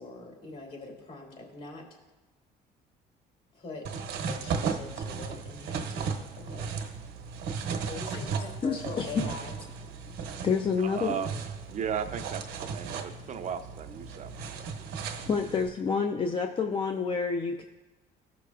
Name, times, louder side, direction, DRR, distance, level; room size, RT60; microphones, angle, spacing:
voice 1, 0.0-1.9 3.5-3.8 4.2-6.7 7.9-9.6, left 3 dB, 65° left, 0 dB, 3.1 m, -43 dB
sound 1, 3.8-15.7, right 5 dB, 80° right, 1.0 m, -36 dB
voice 2, 8.6-9.2 10.4-11.2 15.2-17.6, left 5 dB, 30° left, 4 dB, 0.5 m, -28 dB
voice 3, 10.8-11.4 11.7-14.7 15.0-15.2, right 7 dB, 45° right, 8 dB, 0.6 m, -36 dB
15.0 x 6.0 x 2.4 m, 1.1 s
cardioid pair, 110°, 17 cm